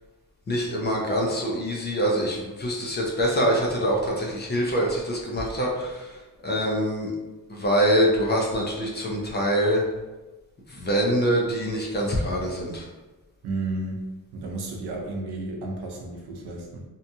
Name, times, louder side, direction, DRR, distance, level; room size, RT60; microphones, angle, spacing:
voice 1, 0.5-6.1 6.4-7.1 7.5-9.8 10.7-12.8, equal, 30° left, -2 dB, 0.4 m, -24 dB
voice 2, 13.4-14.0 14.3-16.8, right 2 dB, 80° right, 1 dB, 0.6 m, -32 dB
2.8 x 2.3 x 2.6 m, 1.1 s
wide cardioid pair, 170°, 39 cm